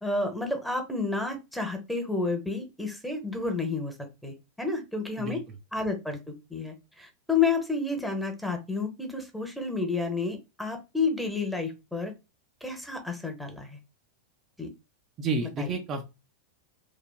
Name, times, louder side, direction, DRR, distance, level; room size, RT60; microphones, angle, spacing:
voice 1, 0.0-3.9 4.2-5.4 5.7-6.2 6.5-12.1 12.6-13.8 14.6-14.7 15.6-15.7, left 4 dB, ahead, 4 dB, 0.8 m, -30 dB
voice 2, 15.2-16.0, right 3 dB, 30° right, 3 dB, 0.5 m, -30 dB
3.2 x 2.4 x 2.2 m, 0.26 s
figure-of-eight pair, 90°, 0 cm